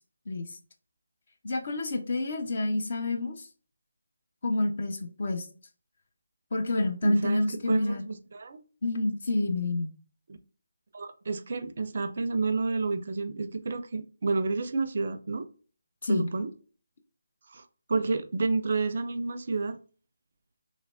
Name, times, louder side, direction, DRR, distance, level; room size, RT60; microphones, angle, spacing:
voice 1, 0.3-0.6 1.4-3.5 4.4-5.5 6.5-8.0 8.8-9.9 16.0-16.3, left 2 dB, 50° left, 0.7 m, -28 dB
voice 2, 7.0-8.6 10.3-10.4 10.9-15.5 16.1-16.5 17.5-17.6 17.9-19.8, right 3 dB, 50° right, 0.4 m, -30 dB
3.2 x 3.2 x 2.5 m
figure-of-eight pair, 155°, 0 cm